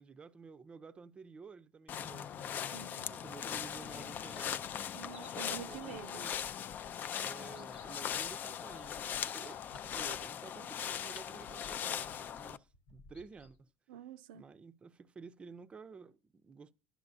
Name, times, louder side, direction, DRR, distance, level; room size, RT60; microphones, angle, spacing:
voice 1, 0.0-2.6 3.1-4.6 5.6-6.3 7.1-13.7 14.3-16.7, right 5 dB, 20° right, 0.5 m, -52 dB
sound 1, 1.9-12.6, left 9 dB, 40° left, 0.3 m, -40 dB
voice 2, 2.7-3.2 4.9-6.3 13.9-14.4, right 10 dB, 85° right, 0.5 m, -48 dB
sound 2, 3.4-13.6, left 4 dB, 90° left, 1.1 m, -57 dB
10.5 x 6.1 x 2.6 m
supercardioid pair, 115°, 5 cm